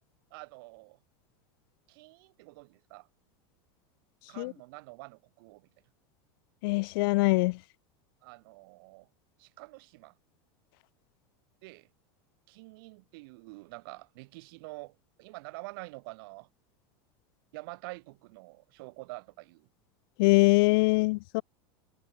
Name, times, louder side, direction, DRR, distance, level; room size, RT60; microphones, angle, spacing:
voice 1, 0.3-1.0 1.9-3.1 4.3-5.7 8.2-9.1 9.4-10.1 11.6-11.9 12.5-16.5 17.5-19.7, right 25 dB, 65° right, 6.9 m, -47 dB
voice 2, 6.6-7.5 20.2-21.4, left 25 dB, 65° left, 0.6 m, -23 dB
supercardioid pair, 140°, 13 cm